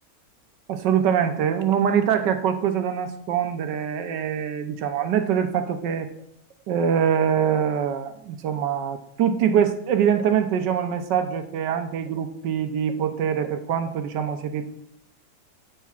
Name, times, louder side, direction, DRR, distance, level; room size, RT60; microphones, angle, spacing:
voice 1, 0.7-6.1 6.7-14.7, right 8 dB, 80° right, 8 dB, 1.4 m, -24 dB
10.0 x 9.3 x 2.4 m, 0.75 s
omnidirectional pair, 1.9 m